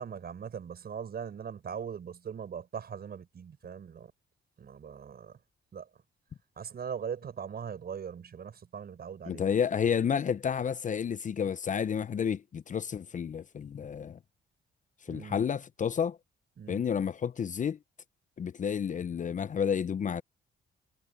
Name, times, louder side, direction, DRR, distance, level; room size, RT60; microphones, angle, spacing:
voice 1, 0.0-4.1 4.6-5.4 5.7-5.9 6.6-9.4 15.1-15.4 16.6-16.8, right 7 dB, 50° right, 5.9 m, -40 dB
voice 2, 9.3-14.2 15.0-16.2 16.7-17.8 18.4-20.2, left 7 dB, 40° left, 0.6 m, -30 dB
cardioid pair, 90°, 20 cm